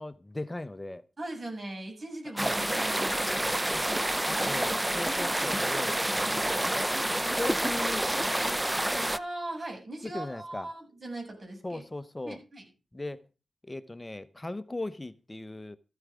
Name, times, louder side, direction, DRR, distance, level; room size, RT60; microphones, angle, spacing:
voice 1, 0.0-1.0 2.3-2.6 3.4-3.9 4.2-6.7 7.3-8.1 10.0-10.7 11.6-12.4 12.9-13.2 13.6-15.8, left 2 dB, 20° left, 0.9 m, -38 dB
voice 2, 1.2-3.6 9.1-11.8 12.2-12.6, right 1 dB, 50° right, 7.7 m, -39 dB
sound 1, 2.4-9.2, right 1 dB, 15° right, 0.6 m, -28 dB
14.0 x 12.5 x 3.7 m
cardioid pair, 50°, 0 cm